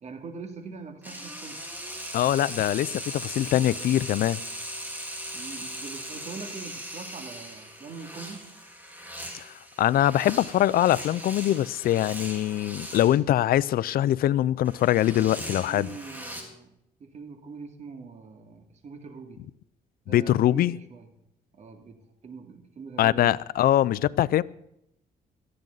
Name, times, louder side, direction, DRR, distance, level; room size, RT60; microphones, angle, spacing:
voice 1, 0.0-1.6 5.3-8.5 15.7-16.7 17.0-19.4 20.1-21.1 21.5-23.4, right 5 dB, 45° right, 2.5 m, -43 dB
sound 1, 1.0-13.2 14.6-16.4, equal, 10° right, 3.7 m, -39 dB
voice 2, 2.1-4.4 9.3-9.5 9.8-15.9 20.1-20.8 23.0-24.4, left 13 dB, 70° left, 0.5 m, -23 dB
18.0 x 13.5 x 4.0 m
cardioid pair, 115°, 16 cm